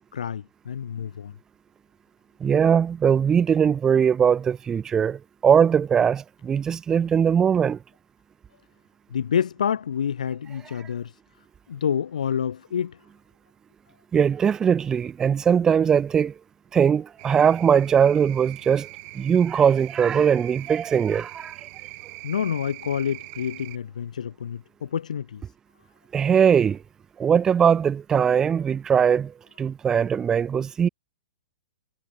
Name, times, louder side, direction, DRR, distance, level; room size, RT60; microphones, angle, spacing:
voice 1, 0.0-1.3 9.1-11.1 11.7-13.0 22.2-25.4, left 8 dB, 80° left, 0.5 m, -28 dB
voice 2, 2.4-7.8 14.1-16.3 16.7-18.9 19.1-21.6 26.1-26.8 27.2-30.9, right 7 dB, 15° right, 0.4 m, -20 dB
sound 1, 17.2-23.8, right 40 dB or more, 40° right, 3.1 m, -42 dB
hypercardioid pair, 130°, 4 cm